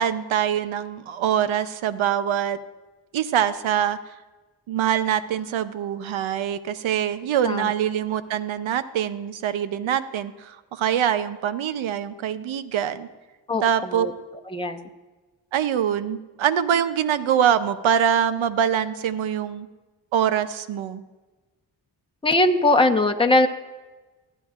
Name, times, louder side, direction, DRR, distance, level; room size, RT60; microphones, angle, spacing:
voice 1, 0.0-2.6 3.1-4.1 4.7-13.1 13.6-14.1 15.5-19.7 20.1-21.0, right 9 dB, 90° right, 13 dB, 0.7 m, -24 dB
voice 2, 13.5-14.1 14.5-14.9 22.2-23.5, left 2 dB, 10° left, 5 dB, 1.0 m, -20 dB
21.0 x 9.1 x 2.4 m, 1.2 s
cardioid pair, 50°, 46 cm